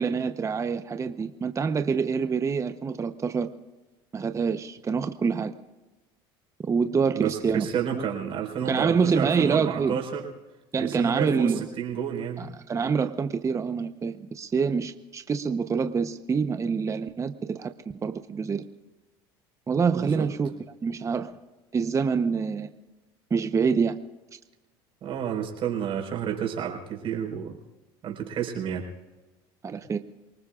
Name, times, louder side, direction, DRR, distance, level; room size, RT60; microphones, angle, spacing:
voice 1, 0.0-3.5 4.1-5.5 6.6-7.7 7.9-8.0 8.6-10.0 10.7-11.6 12.4-17.7 18.0-18.6 19.7-20.5 20.8-21.3 21.7-22.7 23.3-24.0 29.6-30.0, right 5 dB, 25° right, 8 dB, 0.9 m, -26 dB
voice 2, 7.1-10.3 10.8-12.4 19.9-20.3 25.0-27.6 28.0-28.9 29.7-29.8, right 8 dB, 50° right, 1 dB, 4.7 m, -30 dB
28.0 x 19.5 x 2.5 m, 1.1 s
supercardioid pair, 95°, 12 cm